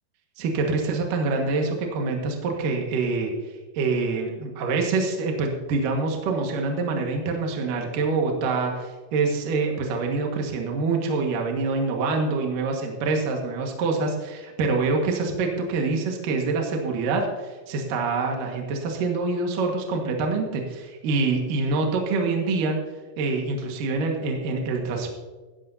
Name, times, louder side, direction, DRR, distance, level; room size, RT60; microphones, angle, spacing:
voice 1, 0.4-3.3 3.7-22.8 23.2-25.1, right 3 dB, 60° right, 1 dB, 2.8 m, -25 dB
16.0 x 14.5 x 2.7 m, 1.3 s
omnidirectional pair, 5.2 m